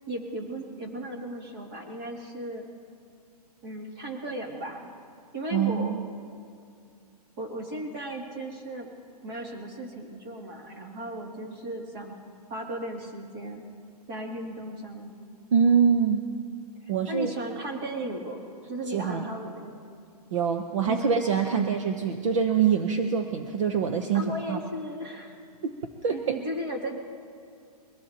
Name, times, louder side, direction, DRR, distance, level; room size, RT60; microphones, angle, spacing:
voice 1, 0.1-2.6 3.6-4.9 5.3-5.9 7.4-8.9 9.2-12.2 12.5-13.6 14.1-15.2 16.8-18.4 18.7-19.8 20.9-21.0 21.5-21.7 24.1-25.4 26.1-27.0, right 1 dB, 35° right, 0 dB, 2.6 m, -36 dB
voice 2, 5.5-6.0 15.5-16.3 16.9-17.3 18.9-19.2 20.3-24.6 25.6-25.7 26.0-26.4, right 6 dB, 50° right, 5 dB, 0.9 m, -24 dB
23.0 x 16.5 x 2.9 m, 2.4 s
hypercardioid pair, 165°, 20 cm